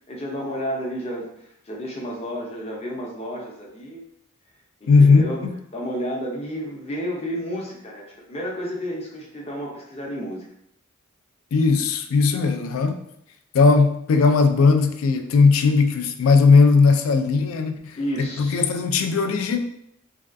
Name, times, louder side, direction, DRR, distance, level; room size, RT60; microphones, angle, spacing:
voice 1, 0.1-4.0 4.8-5.4 5.7-10.4 17.9-18.7, equal, 30° left, -2 dB, 0.6 m, -31 dB
voice 2, 4.9-5.5 11.5-13.0 13.5-18.0 18.4-19.6, left 4 dB, 75° left, 7 dB, 0.3 m, -17 dB
3.4 x 2.3 x 2.5 m, 0.73 s
head